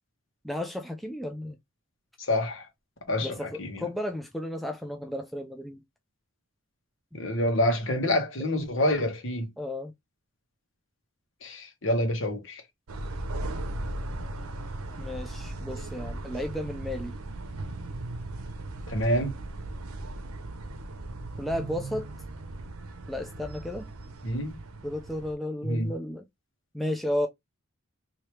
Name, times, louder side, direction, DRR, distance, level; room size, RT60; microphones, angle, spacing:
voice 1, 0.4-1.6 3.2-5.8 7.1-7.2 9.6-9.9 15.0-17.1 21.4-22.1 23.1-23.9 24.8-26.3 26.7-27.3, left 1 dB, ahead, 0.3 m, -33 dB
voice 2, 2.2-2.7 3.1-3.8 7.1-9.5 11.4-12.6 18.9-19.3 24.2-24.6 25.6-25.9, left 1 dB, 60° left, 1.2 m, -27 dB
sound 1, 12.9-25.3, right 2 dB, 85° right, 0.7 m, -37 dB
3.1 x 2.8 x 3.1 m
head